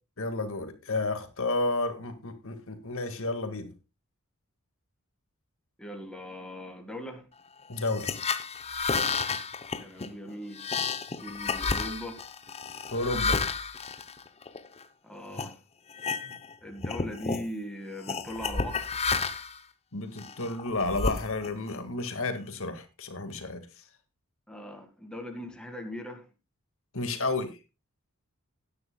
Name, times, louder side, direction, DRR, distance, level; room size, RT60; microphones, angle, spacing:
voice 1, 0.2-3.7 7.7-8.1 12.9-13.4 16.2-16.3 19.9-23.6 26.9-27.6, left 2 dB, 65° left, 8 dB, 1.8 m, -31 dB
voice 2, 5.8-7.3 9.8-10.7 11.2-12.2 15.0-15.6 16.6-19.0 24.5-26.3, equal, 5° left, 4 dB, 1.8 m, -40 dB
sound 1, 7.8-14.8 15.3-15.5 15.9-16.5 16.8-17.5 18.1-19.6 20.2-21.7, left 4 dB, 30° left, 0.7 m, -31 dB
17.5 x 9.6 x 2.2 m, 0.27 s
head